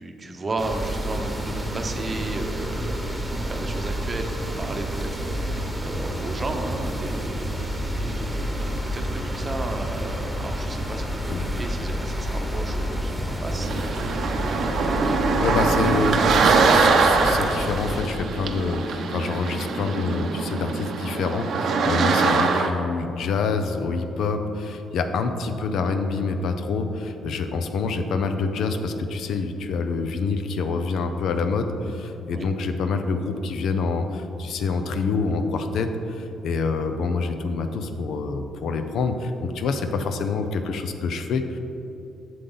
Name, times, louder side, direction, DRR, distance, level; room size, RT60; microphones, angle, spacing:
voice 1, 0.0-15.0 32.3-32.5, right 2 dB, 30° right, 4 dB, 0.8 m, -34 dB
sound 1, 0.6-18.0, equal, 5° right, 1.2 m, -29 dB
sound 2, 13.6-22.7, right 4 dB, 65° right, 0.7 m, -22 dB
voice 2, 15.4-41.6, left 4 dB, 75° left, 7 dB, 0.6 m, -26 dB
7.7 x 6.9 x 3.9 m, 2.9 s
cardioid pair, 90°, 0 cm